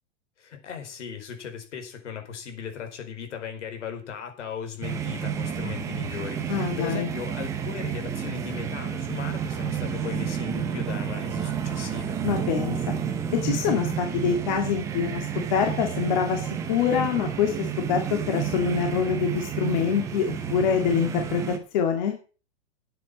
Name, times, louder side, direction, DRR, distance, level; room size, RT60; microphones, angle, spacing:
voice 1, 0.4-12.2, left 8 dB, 75° left, 4.7 m, -37 dB
sound 1, 4.8-21.6, right 8 dB, 10° right, 0.7 m, -30 dB
voice 2, 6.5-7.1 12.2-12.8 13.3-21.4 21.7-22.1, left 7 dB, 35° left, 2.1 m, -25 dB
9.3 x 9.1 x 7.3 m
supercardioid pair, 175°, 36 cm